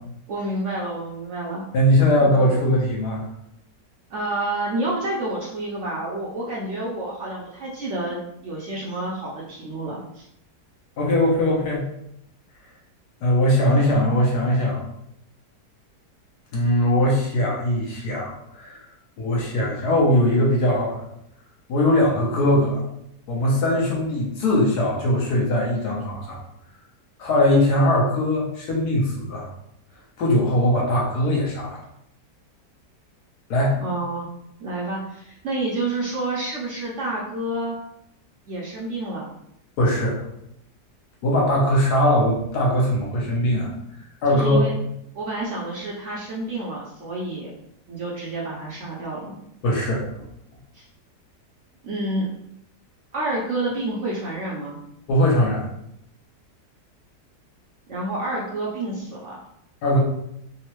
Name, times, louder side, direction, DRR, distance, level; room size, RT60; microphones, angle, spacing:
voice 1, 0.3-1.6 2.2-2.4 4.1-10.3 33.8-34.3 34.6-37.8 38.5-39.3 44.3-44.7 45.1-47.5 47.9-49.3 50.7-50.8 51.8-52.3 53.1-54.8 57.9-59.4, right 2 dB, 65° right, -4 dB, 0.8 m, -29 dB
voice 2, 1.7-3.2 11.0-11.8 13.2-14.8 16.5-18.8 19.2-21.0 21.7-22.8 23.3-26.4 27.2-29.5 30.2-31.8 33.5-33.8 39.8-40.2 41.2-43.7 44.2-44.6 49.6-50.3 55.1-55.7 59.8-60.0, left 1 dB, 75° left, -3 dB, 1.4 m, -20 dB
3.6 x 2.0 x 2.9 m, 0.76 s
omnidirectional pair, 1.7 m